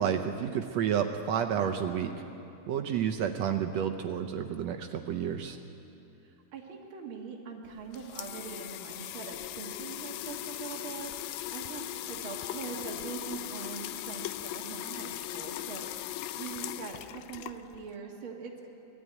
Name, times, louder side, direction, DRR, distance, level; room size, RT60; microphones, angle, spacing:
voice 1, 0.0-2.1 2.7-5.6, right 8 dB, 80° right, 5 dB, 1.5 m, -30 dB
voice 2, 6.2-18.7, right 6 dB, 50° right, 0 dB, 1.9 m, -43 dB
sound 1, 7.7-17.9, left 14 dB, 90° left, 1.6 m, -39 dB
20.5 x 13.5 x 9.3 m, 2.8 s
omnidirectional pair, 3.8 m